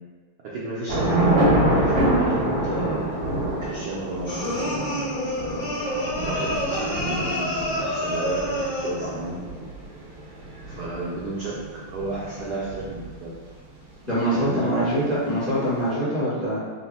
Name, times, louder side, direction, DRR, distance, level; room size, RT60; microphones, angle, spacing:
voice 1, 0.4-5.2 6.3-9.4 10.7-11.6 11.9-13.3 14.3-14.9, right 2 dB, 80° right, -6 dB, 0.9 m, -33 dB
Thunder / Rain, 0.9-13.4, right 1 dB, 45° right, 0.6 m, -26 dB
sound 1, 4.3-9.1, left 1 dB, 60° left, 0.5 m, -28 dB
voice 2, 14.0-16.6, equal, ahead, -12 dB, 0.7 m, -24 dB
4.1 x 2.1 x 4.0 m, 1.5 s
omnidirectional pair, 2.4 m